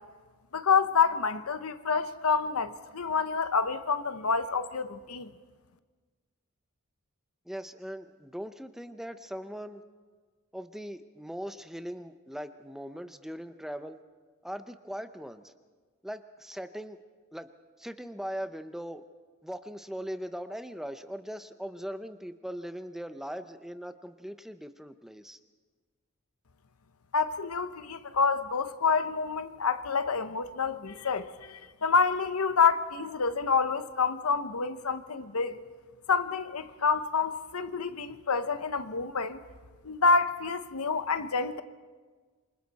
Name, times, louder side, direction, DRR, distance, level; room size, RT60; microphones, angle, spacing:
voice 1, 0.5-5.3 27.1-35.6 36.1-39.4 39.8-41.6, left 5 dB, 75° left, 1.0 m, -28 dB
voice 2, 7.5-9.8 10.5-14.0 14.4-15.5 16.0-17.0 17.3-17.5 17.8-19.0 19.4-25.4, equal, ahead, 0.7 m, -40 dB
27.0 x 24.5 x 4.2 m
head